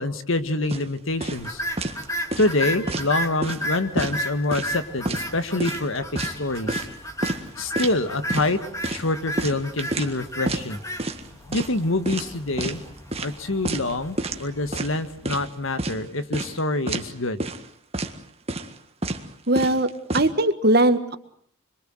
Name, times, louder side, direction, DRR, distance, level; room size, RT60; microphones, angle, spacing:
voice 1, 0.0-1.6 2.4-6.9 7.6-8.6 8.9-10.8 11.5-12.8 13.2-17.4, left 2 dB, 70° left, 10 dB, 1.9 m, -26 dB
sound 1, 0.7-0.9 1.2-1.5 1.8-2.0 2.3-3.1 3.4-3.7 4.0-4.7 5.1-5.3 5.6-6.9 7.2-7.4 7.8-8.0 8.3-8.5 8.8-10.2 10.5-10.7 11.0-11.3 11.5-11.8 12.1-12.8 13.1-13.3 13.6-13.9 14.2-14.4 14.7-15.5 15.8-16.0 16.3-16.6 16.9-17.1 17.4-17.7 17.9-18.1 18.5-18.8 19.0-19.3 19.6-20.3, right 2 dB, 30° right, 1.7 m, -29 dB
sound 2, 1.4-15.7, equal, 15° left, 2.3 m, -34 dB
voice 2, 19.5-19.9 20.1-21.1, right 1 dB, 50° right, 9 dB, 1.7 m, -19 dB
26.0 x 23.0 x 7.9 m, 0.64 s
head